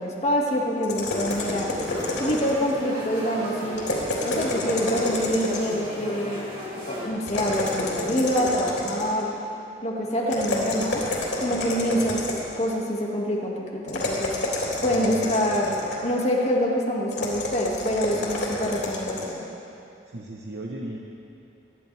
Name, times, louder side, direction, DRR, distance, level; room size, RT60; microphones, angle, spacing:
voice 1, 0.0-1.7 2.2-3.9 4.2-6.4 6.9-9.4 9.8-11.1 11.4-12.2 12.5-14.3 14.8-19.4, equal, 40° left, -3 dB, 2.1 m, -26 dB
sound 1, 0.8-2.7 3.7-5.8 7.3-9.2 10.3-12.7 13.9-16.1 17.1-19.3, left 2 dB, 85° left, 3.5 m, -29 dB
sound 2, 1.8-7.1, equal, 30° right, 2.6 m, -35 dB
voice 2, 14.9-15.3 20.1-21.0, right 1 dB, 75° right, -2 dB, 1.1 m, -36 dB
25.0 x 11.5 x 3.5 m, 2.8 s
head